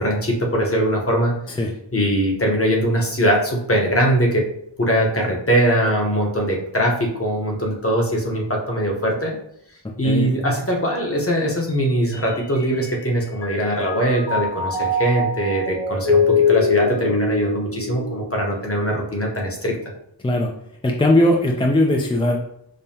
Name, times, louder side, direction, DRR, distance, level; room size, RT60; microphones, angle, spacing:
voice 1, 0.0-1.3 1.9-4.5 4.8-9.4 10.0-19.8, equal, 30° left, -1 dB, 0.9 m, -21 dB
voice 2, 10.0-10.4 20.2-20.5 20.8-22.4, left 1 dB, 15° left, 1 dB, 0.3 m, -19 dB
Mallet percussion, 11.7-13.1 13.4-18.8, left 3 dB, 70° left, 0.8 m, -23 dB
5.2 x 2.2 x 2.8 m, 0.75 s
wide cardioid pair, 65°, 44 cm